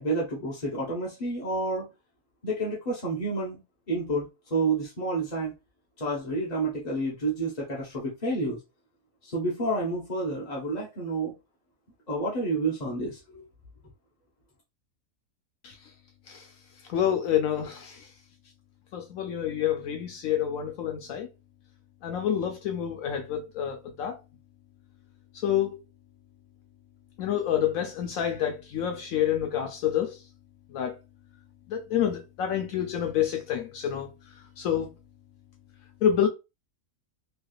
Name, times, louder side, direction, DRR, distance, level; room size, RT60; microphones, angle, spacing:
voice 1, 0.0-1.9 2.4-3.6 3.9-5.5 6.0-8.6 9.2-11.3 12.1-13.4, right 2 dB, 35° left, 0.8 m, -29 dB
voice 2, 16.9-18.1 18.9-21.3 22.0-24.2 25.3-25.7 27.2-30.2 30.7-30.9 31.7-34.9 36.0-36.3, left 9 dB, 75° left, 0.9 m, -28 dB
3.3 x 3.0 x 2.3 m
omnidirectional pair, 1.5 m